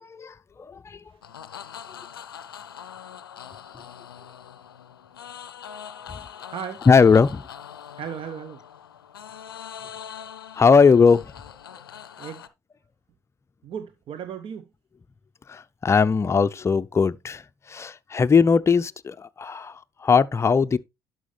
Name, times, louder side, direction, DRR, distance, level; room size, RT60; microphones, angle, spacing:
voice 1, 0.0-1.0 6.9-7.4 10.5-11.3 15.5-17.4 17.7-20.8, left 5 dB, 25° left, 0.5 m, -19 dB
sound 1, 1.2-12.5, left 8 dB, 90° left, 0.5 m, -42 dB
voice 2, 6.5-6.9 8.0-8.6 12.2-12.5 13.6-14.7, right 8 dB, 50° right, 0.8 m, -36 dB
11.0 x 6.2 x 3.3 m
hypercardioid pair, 55°, 12 cm